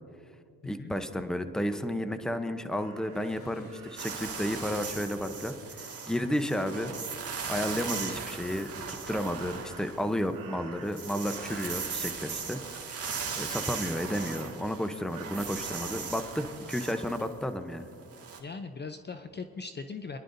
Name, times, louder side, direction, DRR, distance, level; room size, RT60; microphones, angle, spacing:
voice 1, 0.6-6.9 7.5-12.6 12.9-13.0 13.3-17.9, equal, ahead, 9 dB, 0.8 m, -32 dB
Crow, 2.7-4.4 8.2-8.9 9.3-11.1 11.4-12.4 12.7-12.9 13.2-14.6 15.1-15.5, right 7 dB, 85° right, 2.2 m, -51 dB
sound 1, 3.0-4.1 4.9-5.2 5.8-6.9, left 2 dB, 60° left, 3.4 m, -55 dB
sound 2, 4.0-10.4 10.7-18.4, right 5 dB, 45° right, 2.0 m, -38 dB
voice 2, 18.4-20.2, left 4 dB, 30° left, 8 dB, 0.6 m, -39 dB
27.0 x 11.0 x 2.7 m, 2.4 s
cardioid pair, 80°, 34 cm